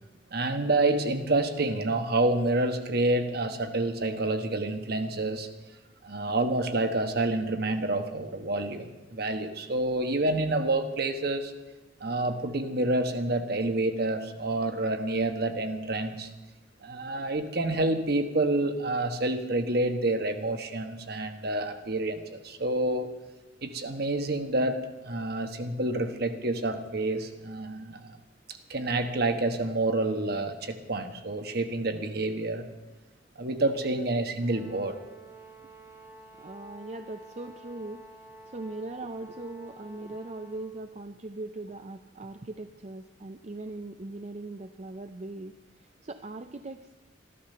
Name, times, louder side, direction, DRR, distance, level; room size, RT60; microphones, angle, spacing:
voice 1, 0.3-5.5 6.0-11.5 12.0-16.3 16.8-23.1 23.6-24.8 25.0-28.1 28.7-32.7 33.4-35.0, right 2 dB, 55° right, 7 dB, 1.3 m, -28 dB
Brass instrument, 34.4-40.8, right 2 dB, 15° right, 1.7 m, -50 dB
voice 2, 36.4-38.0 38.5-46.9, right 2 dB, 35° right, 8 dB, 0.5 m, -40 dB
13.5 x 12.5 x 6.8 m, 1.1 s
head